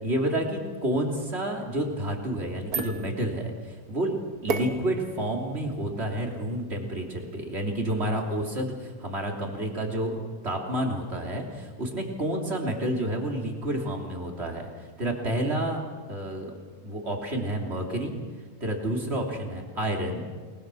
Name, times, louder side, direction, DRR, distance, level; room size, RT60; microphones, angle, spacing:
voice 1, 0.0-4.1 4.4-10.2 10.4-15.8 16.1-16.6 16.8-18.2 18.6-20.3, right 1 dB, 45° right, 1 dB, 3.5 m, -29 dB
sound 1, 2.3-8.5, right 4 dB, 80° right, 2.0 m, -37 dB
29.0 x 20.5 x 6.3 m, 1.5 s
omnidirectional pair, 1.6 m